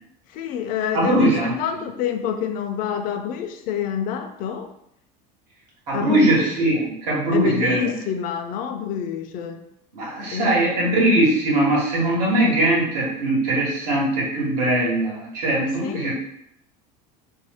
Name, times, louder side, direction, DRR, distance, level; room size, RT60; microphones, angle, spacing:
voice 1, 0.3-4.7 5.9-6.4 7.3-9.6 10.3-10.6 15.8-16.1, left 8 dB, 45° left, 6 dB, 0.4 m, -27 dB
voice 2, 0.9-1.5 5.9-7.9 9.9-16.1, right 1 dB, 85° right, -5 dB, 1.2 m, -20 dB
2.5 x 2.0 x 3.4 m, 0.76 s
supercardioid pair, 110°, 20 cm